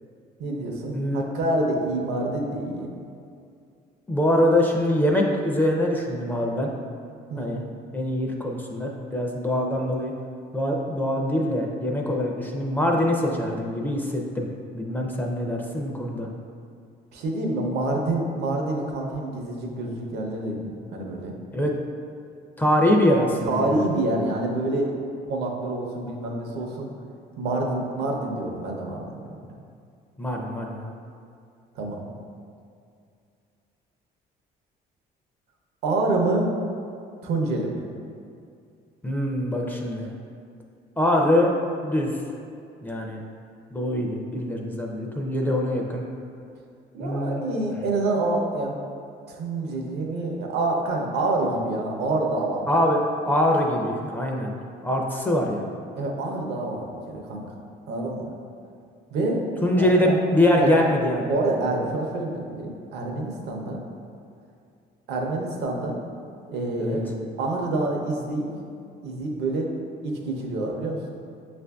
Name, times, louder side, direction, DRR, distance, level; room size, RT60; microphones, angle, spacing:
voice 1, 0.4-2.9 7.3-7.6 17.1-21.3 23.4-25.0 25.3-26.9 27.4-29.5 31.8-32.1 35.8-36.5 37.2-37.8 46.9-48.8 49.3-52.7 55.9-57.5 57.9-58.3 59.1-59.4 59.7-60.1 60.5-60.7 61.2-63.8 65.1-66.0 66.5-68.5 69.0-69.7 70.0-71.2, right 2 dB, 80° right, 0 dB, 0.6 m, -27 dB
voice 2, 0.9-1.3 4.1-6.7 7.4-7.6 7.9-10.1 10.5-14.5 14.7-16.3 21.5-21.7 22.6-23.8 30.2-30.9 39.0-40.1 41.0-41.5 41.8-42.1 42.8-43.2 43.7-46.1 47.0-47.4 52.7-54.5 54.8-55.7 59.6-61.3 66.8-67.0, left 1 dB, 10° left, 0 dB, 0.4 m, -23 dB
6.6 x 2.5 x 2.2 m, 2.4 s
cardioid pair, 110°, 17 cm